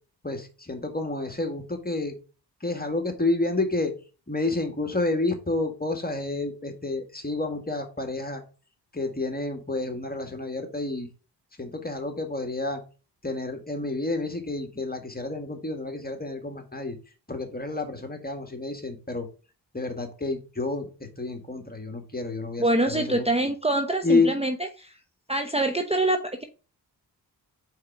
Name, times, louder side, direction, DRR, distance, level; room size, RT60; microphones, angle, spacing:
voice 1, 0.2-2.1 2.6-3.9 4.3-8.4 8.9-11.1 11.6-12.8 13.2-17.0 17.3-19.3 19.7-23.3 24.0-24.3, left 2 dB, 20° left, 5 dB, 1.8 m, -29 dB
voice 2, 22.6-24.9 25.3-26.4, right 2 dB, 15° right, 5 dB, 0.8 m, -25 dB
4.7 x 4.4 x 6.0 m, 0.34 s
cardioid pair, 50°, 44 cm